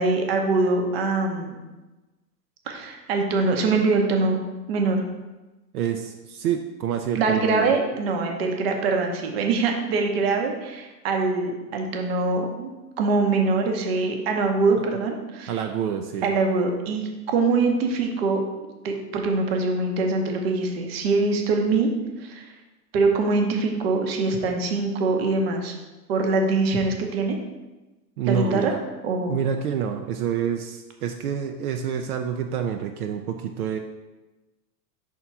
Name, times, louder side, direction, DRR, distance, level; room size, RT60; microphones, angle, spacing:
voice 1, 0.0-1.6 2.7-4.4 4.7-5.0 7.1-12.7 13.0-15.6 16.2-18.4 18.8-21.9 22.2-22.5 22.9-25.7 26.1-27.4 28.2-28.7 29.0-29.4, right 3 dB, 40° right, 3 dB, 0.9 m, -23 dB
voice 2, 5.7-7.7 15.5-16.3 28.2-28.8 29.3-33.8, right 8 dB, 65° right, 4 dB, 0.6 m, -27 dB
6.0 x 3.7 x 5.5 m, 1.1 s
supercardioid pair, 170°, 47 cm